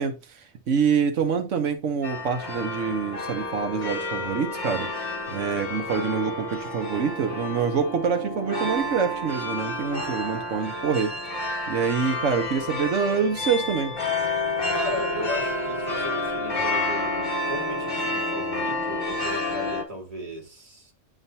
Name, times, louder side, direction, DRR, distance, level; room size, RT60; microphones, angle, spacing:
voice 1, 0.0-11.1 11.7-13.9, right 6 dB, 85° right, 1.3 m, -26 dB
sound 1, 2.0-19.8, left 2 dB, 40° left, 2.1 m, -30 dB
voice 2, 14.7-20.9, equal, 30° right, 2.1 m, -36 dB
10.0 x 3.8 x 2.7 m
omnidirectional pair, 1.2 m